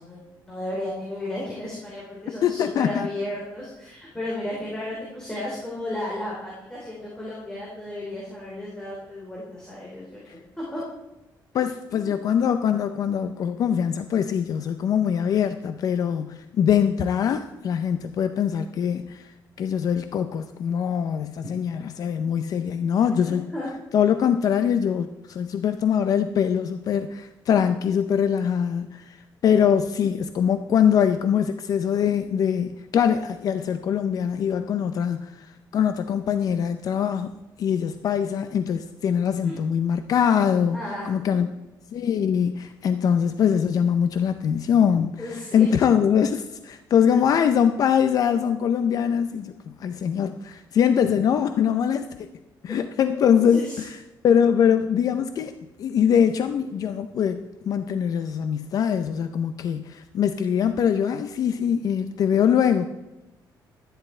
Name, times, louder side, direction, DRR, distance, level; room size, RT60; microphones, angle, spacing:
voice 1, 0.0-10.8 23.5-23.7 39.4-39.6 40.7-41.4 45.2-45.7 51.0-51.1 52.7-52.8 53.1-53.8, left 1 dB, 10° left, -6 dB, 3.0 m, -34 dB
voice 2, 2.4-3.1 10.3-10.4 11.5-23.5 23.9-29.2 29.4-37.3 37.6-40.8 41.1-41.5 41.9-52.3 52.6-53.9 54.2-62.9, left 8 dB, 50° left, 9 dB, 0.5 m, -23 dB
13.0 x 10.0 x 4.3 m, 0.99 s
cardioid pair, 170°, 8 cm